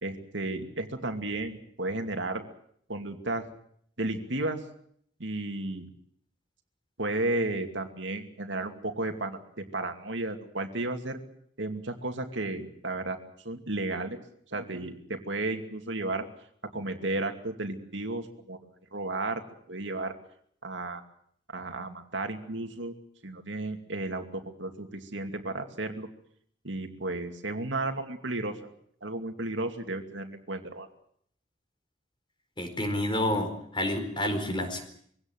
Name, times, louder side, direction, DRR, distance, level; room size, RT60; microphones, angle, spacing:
voice 1, 0.0-2.4 2.9-3.5 4.0-4.7 5.2-5.9 7.0-11.2 11.6-14.2 14.5-16.3 16.6-18.6 18.9-19.4 19.7-20.1 20.6-21.0 21.5-22.9 23.2-26.1 26.6-28.7 29.0-30.9, right 2 dB, 70° right, 5 dB, 2.5 m, -33 dB
voice 2, 32.6-34.8, left 1 dB, 25° left, 6 dB, 4.5 m, -29 dB
22.5 x 17.0 x 9.3 m, 0.65 s
head